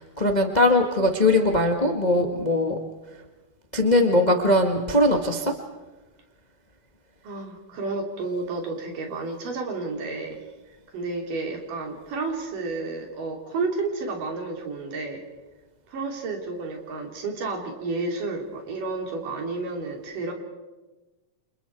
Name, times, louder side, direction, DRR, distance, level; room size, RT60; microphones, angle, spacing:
voice 1, 0.0-2.8 3.7-5.5, left 1 dB, 20° left, 3 dB, 1.1 m, -20 dB
voice 2, 7.2-10.4 10.9-15.2 15.9-20.3, right 3 dB, 75° right, 2 dB, 4.9 m, -31 dB
30.0 x 26.5 x 4.7 m, 1.2 s
omnidirectional pair, 3.8 m